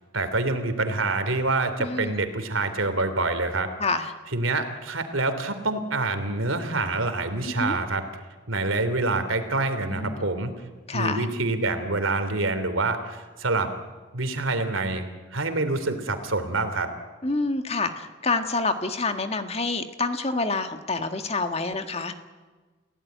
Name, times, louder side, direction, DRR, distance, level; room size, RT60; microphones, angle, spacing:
voice 1, 0.1-3.7 4.3-8.0 8.5-10.5 10.9-13.7 14.1-16.9, right 3 dB, 85° right, 9 dB, 3.1 m, -26 dB
voice 2, 1.8-2.2 3.8-4.1 7.4-7.8 9.9-10.2 10.9-11.3 17.2-22.2, left 3 dB, 30° left, 7 dB, 1.7 m, -27 dB
29.5 x 16.5 x 9.3 m, 1.4 s
head